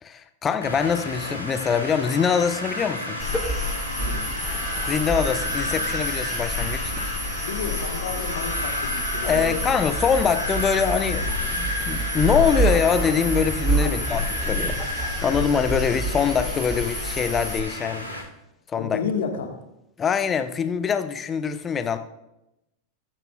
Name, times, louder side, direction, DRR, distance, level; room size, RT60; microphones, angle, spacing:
voice 1, 0.0-3.2 4.9-6.9 9.2-14.2 14.5-14.8 15.2-18.1 18.7-19.0 20.0-22.0, left 6 dB, 20° left, 10 dB, 0.8 m, -24 dB
sound 1, 0.6-18.2, left 1 dB, 85° right, 3.4 m, -32 dB
sound 2, 3.2-17.6, equal, ahead, 4.1 m, -28 dB
voice 2, 7.4-9.7 10.2-10.3 13.8-14.1 18.8-19.6, left 6 dB, 60° left, 4 dB, 1.5 m, -31 dB
21.0 x 9.1 x 2.4 m, 0.89 s
figure-of-eight pair, 90°, 0 cm